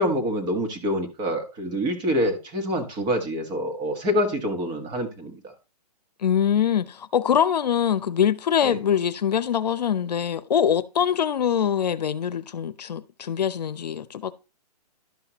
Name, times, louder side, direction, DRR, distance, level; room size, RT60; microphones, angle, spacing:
voice 1, 0.0-5.5 8.6-8.8, equal, 20° right, 1.4 m, -26 dB
voice 2, 6.2-14.3, left 8 dB, 80° left, 0.7 m, -23 dB
11.5 x 5.7 x 2.9 m
hypercardioid pair, 145°, 21 cm